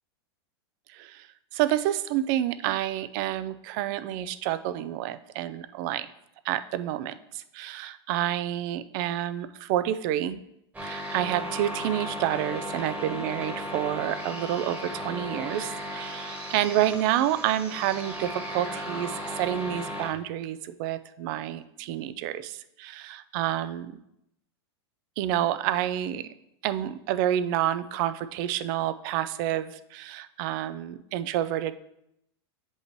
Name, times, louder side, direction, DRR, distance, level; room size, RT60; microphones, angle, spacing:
voice 1, 0.9-1.3 1.5-6.1 6.4-10.4 10.8-23.9 25.2-26.3 26.6-31.7, right 12 dB, 50° right, 13 dB, 0.4 m, -29 dB
sound 1, 10.7-20.1, equal, 10° right, 1.3 m, -36 dB
8.1 x 5.4 x 3.1 m, 0.81 s
hypercardioid pair, 125°, 14 cm